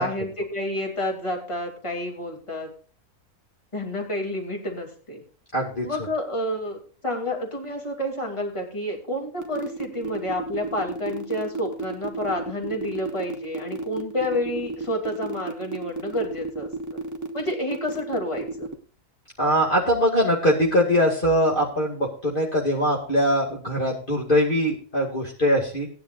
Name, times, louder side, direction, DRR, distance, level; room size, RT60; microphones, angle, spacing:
voice 1, 0.0-2.7 3.7-5.2 5.8-6.8 7.0-17.0 17.3-18.7, left 1 dB, 20° left, 1 dB, 2.6 m, -29 dB
voice 2, 5.5-5.9 19.4-25.9, equal, 35° left, -2 dB, 2.4 m, -22 dB
sound 1, 9.4-18.7, right 3 dB, 10° right, 1.2 m, -32 dB
18.5 x 10.5 x 2.5 m, 0.40 s
omnidirectional pair, 1.6 m